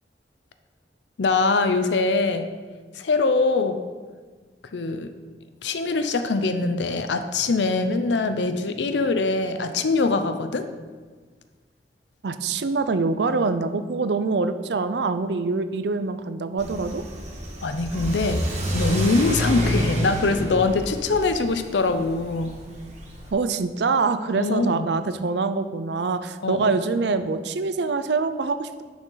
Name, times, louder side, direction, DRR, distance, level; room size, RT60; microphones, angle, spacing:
voice 1, 1.2-2.5 2.9-3.8 4.7-5.1 5.6-10.7 17.6-18.4 18.7-22.5 24.4-24.9 26.4-26.7, left 3 dB, 80° left, 8 dB, 0.6 m, -23 dB
voice 2, 12.2-17.1 23.3-28.8, right 4 dB, 70° right, 11 dB, 0.5 m, -25 dB
Car / Accelerating revving vroom, 16.6-23.3, equal, 40° right, 1.5 m, -29 dB
10.5 x 6.2 x 3.9 m, 1.4 s
head